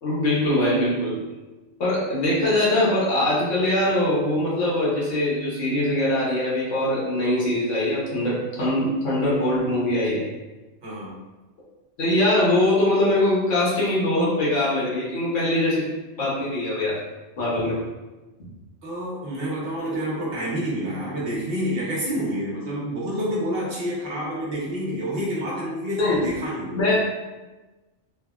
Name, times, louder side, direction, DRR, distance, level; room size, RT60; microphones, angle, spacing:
voice 1, 0.0-1.2 1.8-10.2 12.0-15.8 16.2-17.0 17.4-17.8 26.0-26.4 26.7-26.9, left 1 dB, 85° left, -6 dB, 1.2 m, -22 dB
voice 2, 10.8-11.1 18.8-26.8, equal, 55° right, -6 dB, 1.0 m, -28 dB
3.3 x 2.1 x 2.3 m, 1.2 s
omnidirectional pair, 1.2 m